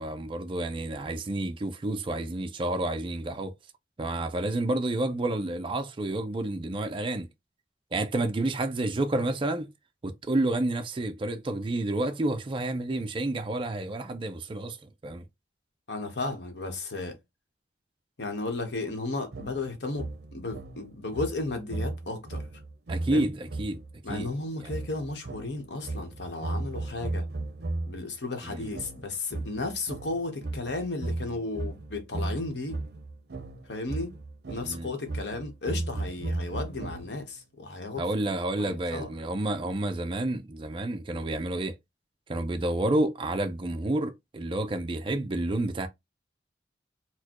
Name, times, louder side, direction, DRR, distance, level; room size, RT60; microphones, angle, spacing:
voice 1, 0.0-3.5 4.0-7.3 7.9-9.7 10.0-15.2 22.9-23.8 24.1-24.3 24.6-24.7 28.5-28.7 34.6-34.9 38.0-41.8 42.3-45.9, right 2 dB, 30° right, 0.4 m, -30 dB
voice 2, 15.9-17.2 18.2-22.5 23.1-23.2 24.0-27.3 27.9-32.8 33.7-34.2 34.5-38.0 38.6-39.1, left 3 dB, 75° left, 1.0 m, -34 dB
sound 1, 19.3-28.1 28.7-37.4, right 2 dB, 65° right, 0.7 m, -36 dB
4.2 x 2.2 x 2.9 m
head